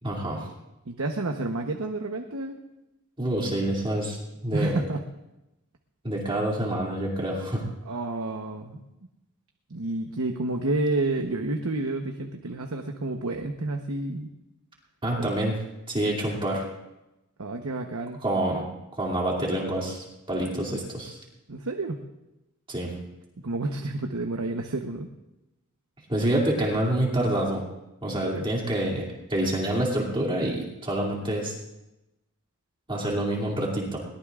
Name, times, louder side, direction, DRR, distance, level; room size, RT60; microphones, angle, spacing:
voice 1, 0.0-0.4 3.2-4.2 4.4-4.8 6.0-7.6 15.0-15.5 15.9-16.6 18.2-18.6 19.0-21.2 22.7-22.9 26.1-27.6 28.0-31.5 32.9-34.0, right 1 dB, 25° right, -2 dB, 2.7 m, -27 dB
voice 2, 0.8-2.6 4.5-5.0 7.8-8.8 9.7-14.3 15.2-15.3 17.4-18.2 21.5-22.0 23.4-25.1 28.1-28.5, right 2 dB, 70° right, 4 dB, 1.0 m, -30 dB
21.5 x 19.0 x 2.5 m, 0.96 s
head